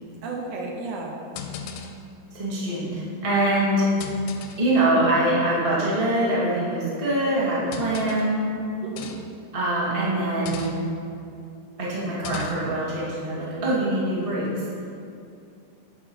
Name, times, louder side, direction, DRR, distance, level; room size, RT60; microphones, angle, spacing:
voice 1, 0.2-1.1 3.7-3.8 8.8-9.1, right 3 dB, 75° right, -1 dB, 2.0 m, -33 dB
sound 1, 1.4-2.1 3.0-3.2 4.0-4.8 5.7-5.8 7.7-8.4 9.0-9.4 10.2-11.0 12.1-12.8, left 6 dB, 80° left, 1.8 m, -37 dB
voice 2, 2.3-3.9 4.6-8.4 9.5-10.7 11.8-14.6, right 1 dB, 25° right, -7 dB, 0.7 m, -24 dB
9.3 x 3.9 x 6.1 m, 2.5 s
omnidirectional pair, 3.9 m